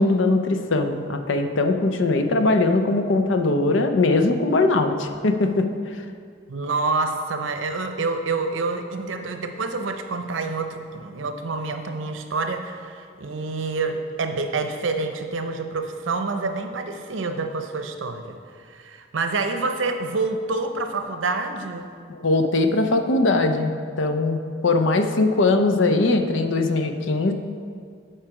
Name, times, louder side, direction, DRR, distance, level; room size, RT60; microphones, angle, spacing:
voice 1, 0.0-5.7 22.1-23.7 24.0-27.3, left 2 dB, 80° left, 7 dB, 0.6 m, -20 dB
voice 2, 6.5-21.9, right 3 dB, 85° right, 6 dB, 0.6 m, -27 dB
8.9 x 4.7 x 4.8 m, 2.1 s
head